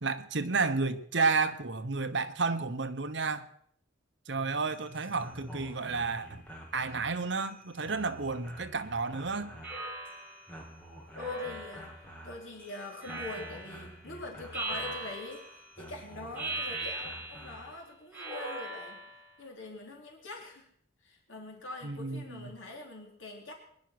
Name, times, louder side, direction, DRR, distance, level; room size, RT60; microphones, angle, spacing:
voice 1, 0.0-3.5 4.3-6.5 6.7-9.6 21.8-22.5, right 4 dB, 65° right, 1.1 m, -31 dB
sound 1, 4.7-17.8, equal, 5° left, 2.5 m, -50 dB
Speech synthesizer, 9.6-10.4 11.2-12.0 13.0-13.8 14.5-15.5 16.3-17.6 18.1-19.2, right 2 dB, 10° right, 5.3 m, -39 dB
voice 2, 11.1-11.9 12.2-15.5 15.8-19.0 19.4-20.7 21.0-23.5, left 2 dB, 85° left, 3.8 m, -44 dB
22.0 x 11.0 x 6.0 m
head